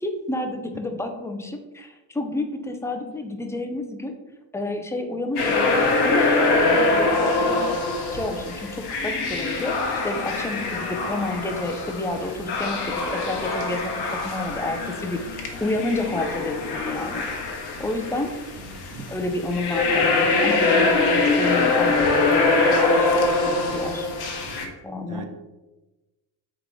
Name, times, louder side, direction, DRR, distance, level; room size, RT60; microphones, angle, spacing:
voice 1, 0.0-4.1 4.5-7.8 8.1-9.8 10.0-13.9 14.2-17.2 17.8-18.3 19.0-24.1 24.8-25.2, left 2 dB, 5° left, 5 dB, 0.4 m, -30 dB
sound 1, 5.4-24.7, left 3 dB, 55° left, 0.9 m, -23 dB
voice 2, 18.6-19.1 24.5-24.7 25.1-25.3, right 5 dB, 45° right, 6 dB, 0.6 m, -41 dB
3.6 x 3.6 x 3.1 m, 1.1 s
supercardioid pair, 90°, 46 cm